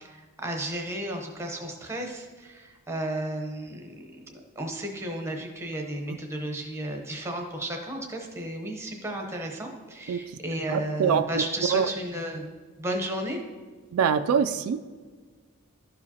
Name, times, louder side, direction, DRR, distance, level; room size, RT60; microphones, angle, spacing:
voice 1, 0.0-3.9 4.3-12.5 12.8-13.4, right 1 dB, 10° right, 2 dB, 0.8 m, -33 dB
voice 2, 10.1-10.4 10.7-11.4 11.7-11.9 13.9-14.8, right 7 dB, 75° right, 9 dB, 0.3 m, -24 dB
12.0 x 4.9 x 2.8 m, 1.5 s
head